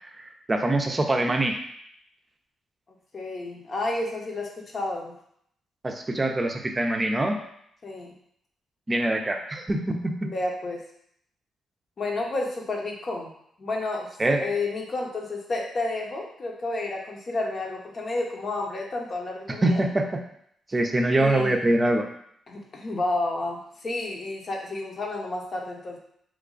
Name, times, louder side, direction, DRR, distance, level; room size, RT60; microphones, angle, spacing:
voice 1, 0.0-1.6 5.8-7.4 8.9-10.3 14.2-14.4 19.6-20.0 20.7-22.1, right 1 dB, 25° right, 4 dB, 0.5 m, -24 dB
voice 2, 3.1-5.2 7.8-8.1 10.2-10.8 12.0-13.3 13.6-14.1 14.4-19.8 21.2-21.7 22.5-26.0, left 2 dB, 50° left, 0 dB, 0.8 m, -31 dB
3.1 x 2.3 x 3.8 m, 0.69 s
cardioid pair, 65°, 0 cm